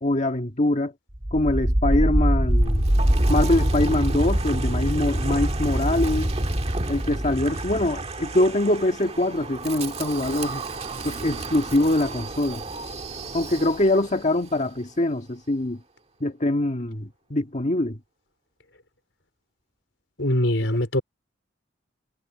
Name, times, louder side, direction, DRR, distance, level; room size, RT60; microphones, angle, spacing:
voice 1, 0.0-0.9 1.3-2.9 3.3-6.3 6.9-10.7 11.0-12.6 13.3-15.8 16.2-18.0, left 1 dB, 40° left, 1.7 m, -23 dB
Wind, 1.1-14.1, right 1 dB, 35° right, 1.7 m, -25 dB
voice 2, 20.2-21.0, left 1 dB, 85° left, 4.5 m, -22 dB
head